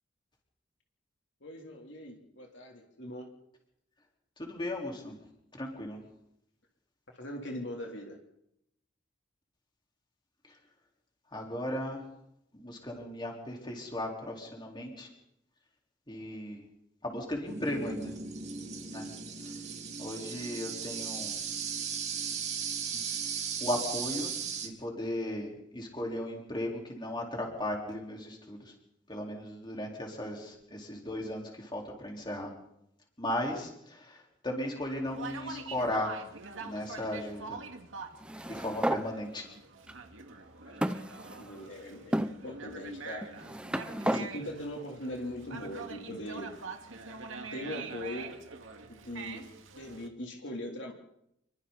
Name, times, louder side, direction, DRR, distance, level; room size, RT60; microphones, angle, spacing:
voice 1, 1.4-3.3 7.2-8.2 40.4-41.0 41.3-43.3 44.0-46.5 47.5-48.3 49.1-49.4 49.8-50.9, left 1 dB, 65° left, 1 dB, 3.5 m, -40 dB
voice 2, 4.4-5.1 5.6-6.0 11.3-12.0 12.6-15.1 16.1-16.6 17.0-18.1 18.9-19.0 20.0-21.4 23.6-24.3 24.6-28.6 29.1-32.5 33.2-34.2 34.4-36.1 36.6-37.6 38.5-39.4, left 1 dB, 25° left, 0 dB, 4.4 m, -36 dB
sound 1, 17.5-24.7, right 6 dB, 35° right, 2.6 m, -36 dB
Conversation, 35.1-50.1, right 4 dB, 80° right, 2.3 m, -44 dB
sound 2, 38.2-39.0 39.9-40.0 40.8-41.6 42.1-42.3 43.2-44.3, right 1 dB, 5° right, 0.7 m, -32 dB
28.5 x 23.0 x 4.2 m, 0.76 s
head